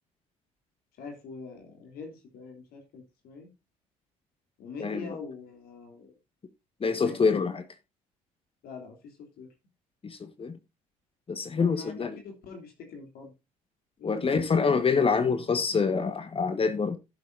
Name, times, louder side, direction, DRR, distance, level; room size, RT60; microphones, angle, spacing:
voice 1, 1.0-3.5 4.6-6.1 7.0-7.4 8.6-9.5 11.6-13.3 14.0-14.7, left 4 dB, 60° left, 3.2 m, -44 dB
voice 2, 6.8-7.6 10.0-10.5 11.3-12.1 14.0-17.0, left 5 dB, 30° left, 1.5 m, -26 dB
15.5 x 7.5 x 2.7 m
hypercardioid pair, 55°, 18 cm